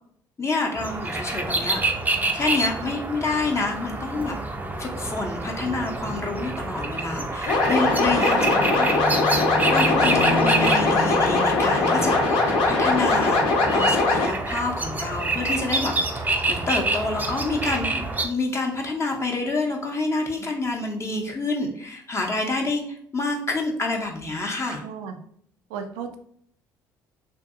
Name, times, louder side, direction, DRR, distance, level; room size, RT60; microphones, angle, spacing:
voice 1, 0.4-1.8 2.3-4.4 4.8-8.9 9.7-24.8, left 3 dB, 30° left, 1 dB, 0.6 m, -28 dB
sound 1, 0.8-18.3, right 2 dB, 15° right, 0.5 m, -27 dB
sound 2, 7.5-14.3, left 3 dB, 70° left, 0.7 m, -21 dB
voice 2, 8.1-8.7 24.8-25.2 25.7-26.2, right 7 dB, 75° right, 6 dB, 0.4 m, -33 dB
2.6 x 2.6 x 2.4 m, 0.65 s
hypercardioid pair, 60°, 10 cm